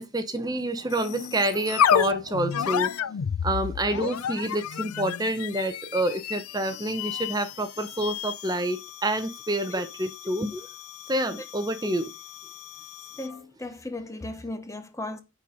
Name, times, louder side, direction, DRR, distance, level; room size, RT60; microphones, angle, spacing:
voice 1, 0.0-2.9 3.4-10.5 11.1-12.1, right 1 dB, 15° right, 0.8 m, -28 dB
sound 1, 0.9-13.4, left 8 dB, 80° left, 0.4 m, -31 dB
voice 2, 13.2-15.2, left 2 dB, 15° left, 0.8 m, -36 dB
9.7 x 4.3 x 5.0 m
head